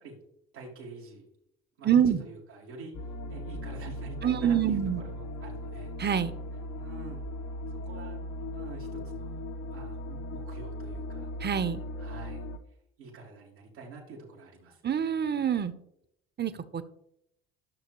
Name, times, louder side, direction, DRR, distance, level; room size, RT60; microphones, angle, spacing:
voice 1, 0.5-1.3 1.8-3.0 3.3-5.9 6.8-7.2 7.9-8.2 8.5-11.3 12.0-12.5 13.0-14.8, right 3 dB, 90° right, -7 dB, 2.1 m, -47 dB
voice 2, 1.8-2.2 4.2-5.0 6.0-6.3 11.4-11.8 14.8-15.7 16.4-16.8, right 8 dB, 35° right, 13 dB, 0.9 m, -26 dB
sound 1, 2.9-12.6, left 1 dB, 65° left, 1.0 m, -38 dB
13.0 x 6.4 x 3.1 m, 0.76 s
hypercardioid pair, 60°, 31 cm